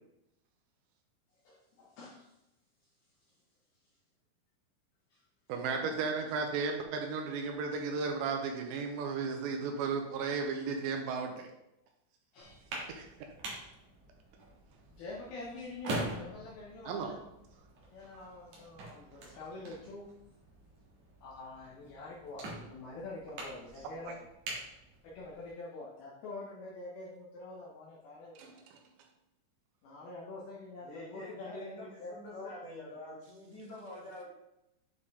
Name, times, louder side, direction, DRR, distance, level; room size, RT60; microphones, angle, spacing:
voice 1, 1.4-2.3 5.1-5.2 12.3-12.9 14.9-17.2 17.9-20.1 21.2-24.1 25.0-28.5 29.8-32.5, left 2 dB, 75° left, -5 dB, 2.4 m, -46 dB
voice 2, 5.5-11.5 12.9-13.1 16.9-17.1 24.1-24.2 28.4-28.8, right 5 dB, 80° right, 3 dB, 2.8 m, -34 dB
sound 1, 12.4-25.5, right 1 dB, 60° right, 2.0 m, -45 dB
voice 3, 30.8-34.2, left 1 dB, 35° left, -8 dB, 3.0 m, -47 dB
8.8 x 4.3 x 3.6 m, 0.88 s
omnidirectional pair, 5.4 m